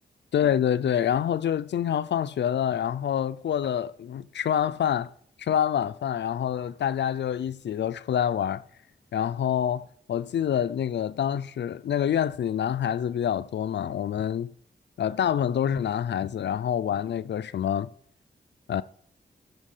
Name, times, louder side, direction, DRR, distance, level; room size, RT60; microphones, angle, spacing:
voice 1, 0.3-5.1 5.4-8.6 9.1-14.5 15.0-17.9 18.7-18.8, left 9 dB, 85° left, 0.5 m, -26 dB
13.0 x 6.2 x 6.6 m
wide cardioid pair, 105°, 18 cm